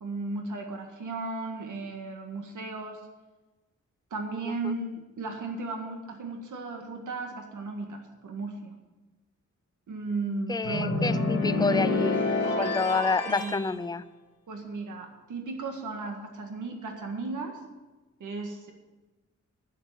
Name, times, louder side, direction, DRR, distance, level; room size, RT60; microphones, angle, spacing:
voice 1, 0.0-3.0 4.1-8.7 9.9-11.4 12.5-12.8 13.3-13.5 14.5-17.6 18.2-18.7, right 3 dB, 85° right, 3 dB, 1.8 m, -35 dB
voice 2, 10.5-14.0, left 4 dB, 15° left, 14 dB, 0.3 m, -29 dB
sound 1, 10.6-13.6, left 3 dB, 55° left, 3.0 m, -27 dB
9.3 x 7.2 x 8.8 m, 1.2 s
wide cardioid pair, 145°, 30 cm